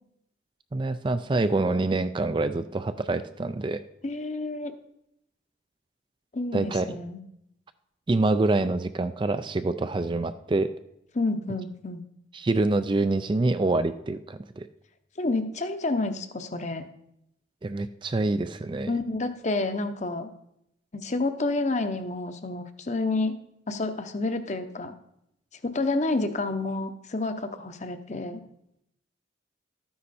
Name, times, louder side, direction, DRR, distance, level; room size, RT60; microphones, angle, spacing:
voice 1, 0.7-3.8 6.5-6.9 8.1-10.7 12.3-14.7 17.6-18.9, right 2 dB, 25° right, 11 dB, 0.3 m, -26 dB
voice 2, 4.0-4.7 6.3-7.2 11.1-12.0 15.2-16.9 18.9-20.3 20.9-23.3 23.7-24.9 25.6-28.4, left 2 dB, 35° left, 9 dB, 0.8 m, -29 dB
13.0 x 9.6 x 4.3 m, 0.80 s
head